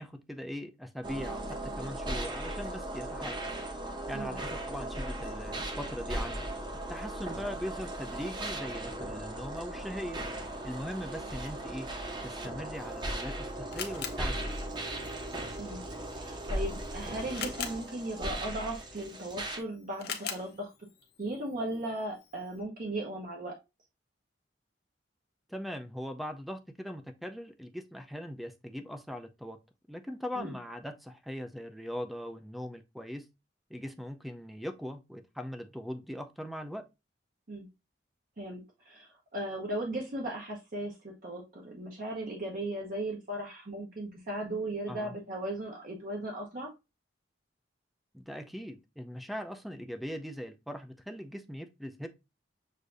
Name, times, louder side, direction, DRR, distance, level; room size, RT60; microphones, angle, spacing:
voice 1, 0.0-3.5 4.1-6.5 6.9-10.2 10.6-11.9 12.2-14.6 25.5-29.6 29.9-33.3 33.7-36.8 44.9-45.1 48.1-52.1, equal, ahead, 0.4 m, -40 dB
sound 1, 1.0-19.6, right 1 dB, 25° right, 0.8 m, -37 dB
Camera, 12.8-22.6, left 7 dB, 60° left, 0.7 m, -45 dB
voice 2, 15.6-20.7 21.2-23.6 30.3-30.5 37.5-37.7 38.4-46.7, right 1 dB, 50° right, 0.9 m, -37 dB
6.4 x 2.6 x 2.5 m
head